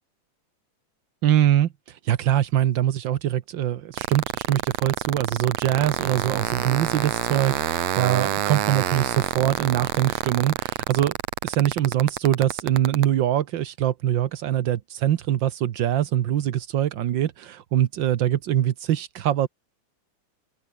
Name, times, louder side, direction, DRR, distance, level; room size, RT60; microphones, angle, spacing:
voice 1, 1.2-11.1 11.4-19.5, right 11 dB, 90° right, 1.0 m, -23 dB
sound 1, 3.9-13.0, right 12 dB, 65° right, 2.2 m, -27 dB
omnidirectional pair, 3.4 m